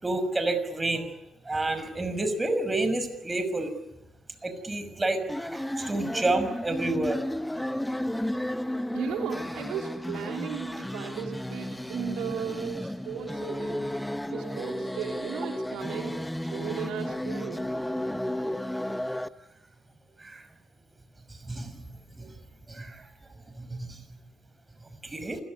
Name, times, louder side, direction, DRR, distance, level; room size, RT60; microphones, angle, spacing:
voice 1, 0.0-1.1 1.5-3.7 4.4-5.2 5.5-5.6 5.9-7.2 21.5-21.7 22.8-22.9 23.6-23.9 25.1-25.4, right 2 dB, 20° right, 9 dB, 6.1 m, -28 dB
sound 1, 5.3-19.3, left 1 dB, 5° left, 1.2 m, -33 dB
voice 2, 8.9-14.0 14.3-17.7, right 8 dB, 90° right, 2 dB, 3.1 m, -36 dB
29.0 x 17.5 x 9.9 m, 0.89 s
cardioid pair, 90°, 0 cm